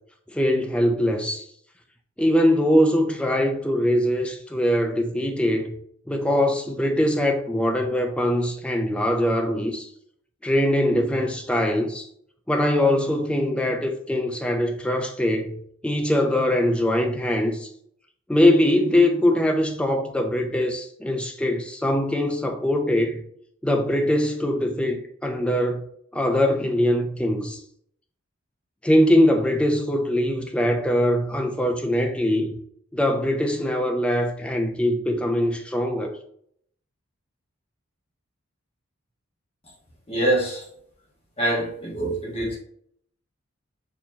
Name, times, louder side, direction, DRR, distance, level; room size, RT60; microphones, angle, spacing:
voice 1, 0.3-1.5 2.2-5.7 6.1-9.9 10.4-12.1 12.5-15.6 15.8-17.7 18.3-23.2 23.6-25.8 26.1-27.6 28.8-32.5 32.9-36.2, left 1 dB, 5° left, 0.3 m, -22 dB
voice 2, 40.1-40.6 41.4-42.6, right 1 dB, 25° left, 1.2 m, -24 dB
4.1 x 2.8 x 2.7 m
head